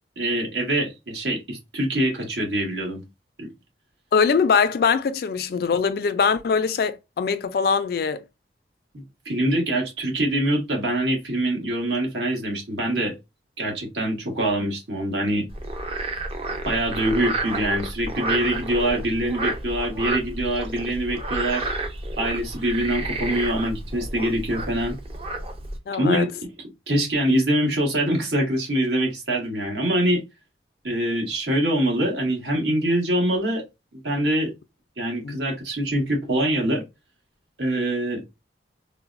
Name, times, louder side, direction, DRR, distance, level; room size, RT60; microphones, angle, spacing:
voice 1, 0.2-3.0 3.4-3.5 8.9-13.1 13.6-15.5 16.6-21.7 22.2-25.0 26.0-26.3 26.9-30.2 30.8-33.6 33.9-34.5 35.0-36.8 37.6-38.2, right 1 dB, 80° right, 1.3 m, -24 dB
voice 2, 4.1-8.2 25.9-26.3 35.2-35.4, left 5 dB, 55° left, 0.3 m, -22 dB
Frog, 15.5-25.8, right 2 dB, 30° right, 0.4 m, -31 dB
3.8 x 2.0 x 2.4 m
head